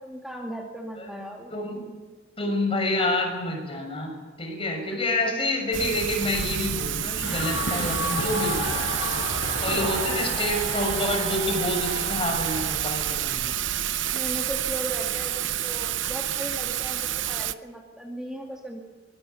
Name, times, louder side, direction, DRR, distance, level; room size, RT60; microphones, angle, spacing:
voice 1, 0.0-1.5 9.7-10.2 14.1-18.8, right 1 dB, 5° right, 0 dB, 2.1 m, -37 dB
voice 2, 1.5-1.8 2.4-8.8 9.6-13.5, left 1 dB, 30° left, 3 dB, 6.6 m, -28 dB
Thunder / Rain, 5.7-17.5, right 11 dB, 75° right, 0.8 m, -29 dB
sound 1, 7.2-12.6, left 2 dB, 70° left, 5.7 m, -32 dB
23.5 x 22.0 x 7.1 m, 1.3 s
head